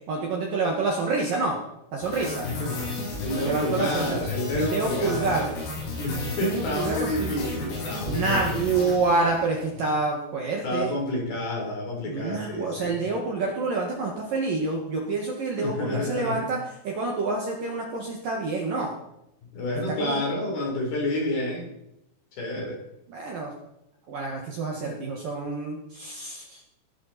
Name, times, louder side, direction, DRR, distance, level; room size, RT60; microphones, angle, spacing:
voice 1, 0.1-1.6 1.9-2.5 3.4-5.5 6.1-7.3 8.1-10.9 12.1-16.6 16.8-18.9 20.0-20.2 23.1-23.5 24.1-26.6, right 3 dB, 55° right, -1 dB, 2.8 m, -27 dB
sound 1, 2.0-9.6, left 3 dB, 85° left, 8.3 m, -33 dB
voice 2, 2.4-5.3 5.9-8.7 10.6-13.0 15.6-16.5 19.5-21.8 22.3-22.8, left 1 dB, 50° left, 0 dB, 5.7 m, -29 dB
18.5 x 12.5 x 4.3 m, 0.82 s
omnidirectional pair, 6.0 m